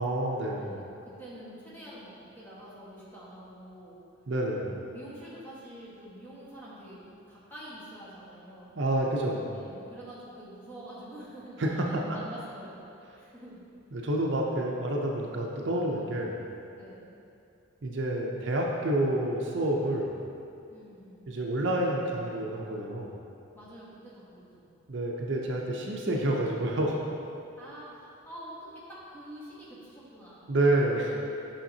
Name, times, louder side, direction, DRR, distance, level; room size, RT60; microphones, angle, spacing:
voice 1, 0.0-0.8 4.3-4.8 8.8-9.5 11.6-12.2 13.9-16.4 17.8-20.2 21.3-23.1 24.9-27.0 30.5-31.2, right 1 dB, 60° right, -1 dB, 0.6 m, -28 dB
voice 2, 0.5-4.0 4.6-8.8 9.5-12.8 13.1-13.6 16.7-17.1 20.7-21.3 23.5-24.7 27.6-30.5, right 1 dB, 10° left, -9 dB, 1.4 m, -47 dB
8.8 x 5.7 x 2.8 m, 2.7 s
head